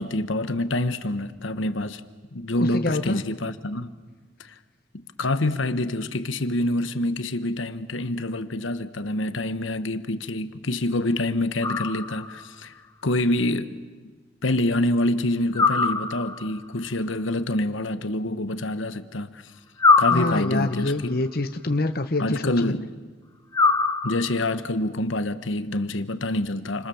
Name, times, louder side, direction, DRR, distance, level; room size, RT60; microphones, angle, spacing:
voice 1, 0.0-2.0 2.3-3.9 4.4-4.6 4.9-12.7 13.0-14.1 14.4-19.5 20.0-21.2 22.2-22.9 24.0-26.9, left 1 dB, 80° left, 1.2 m, -26 dB
voice 2, 2.6-3.2 20.1-22.7, left 2 dB, 50° left, 1.0 m, -26 dB
sound 1, 11.6-12.5 15.5-16.6 19.8-20.9 23.5-24.5, left 4 dB, 20° left, 1.1 m, -22 dB
29.5 x 26.0 x 7.2 m
head